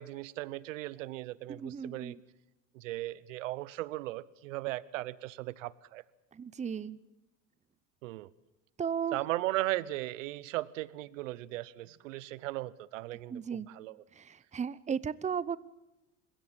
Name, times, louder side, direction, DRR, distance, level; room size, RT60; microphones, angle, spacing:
voice 1, 0.0-2.2 2.7-6.0 8.0-8.3 9.1-14.0, right 17 dB, 85° right, 21 dB, 0.9 m, -37 dB
voice 2, 1.5-2.2 6.3-7.0 8.8-9.2 13.3-13.7 14.1-15.6, right 7 dB, 20° right, 19 dB, 0.8 m, -35 dB
27.5 x 16.5 x 9.0 m, 0.97 s
supercardioid pair, 100°, 37 cm